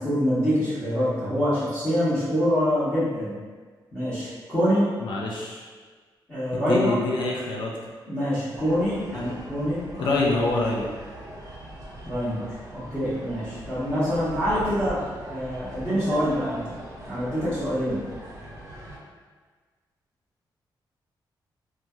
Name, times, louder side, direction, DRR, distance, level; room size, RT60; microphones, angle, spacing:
voice 1, 0.0-3.3 3.9-4.9 6.3-6.9 8.1-10.2 12.0-12.4 12.7-15.0 15.3-16.8 17.0-18.0, equal, 15° left, -15 dB, 1.0 m, -25 dB
voice 2, 5.0-5.6 6.5-7.7 9.1-9.4 10.0-10.9, left 2 dB, 75° left, -2 dB, 0.4 m, -26 dB
sound 1, 8.5-19.0, right 1 dB, 40° right, 0.7 m, -41 dB
3.0 x 2.3 x 2.6 m, 1.5 s
wide cardioid pair, 140°, 8 cm